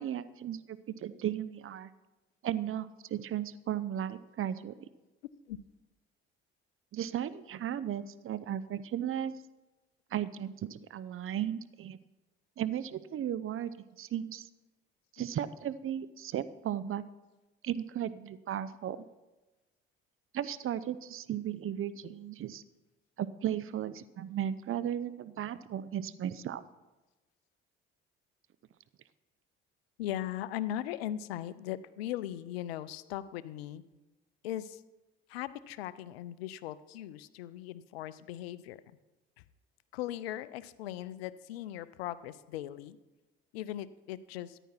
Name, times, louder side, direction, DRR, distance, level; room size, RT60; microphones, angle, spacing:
voice 1, 0.0-1.9 2.4-4.8 6.9-9.4 10.1-12.0 12.6-14.5 15.1-17.0 17.6-19.0 20.3-22.6 23.2-26.6, right 10 dB, 45° right, 15 dB, 0.7 m, -35 dB
voice 2, 30.0-33.8 34.4-34.8 35.3-38.8 39.9-43.0 43.5-44.6, left 12 dB, 80° left, 16 dB, 0.6 m, -39 dB
14.0 x 9.9 x 4.5 m, 1.1 s
hypercardioid pair, 55°, 30 cm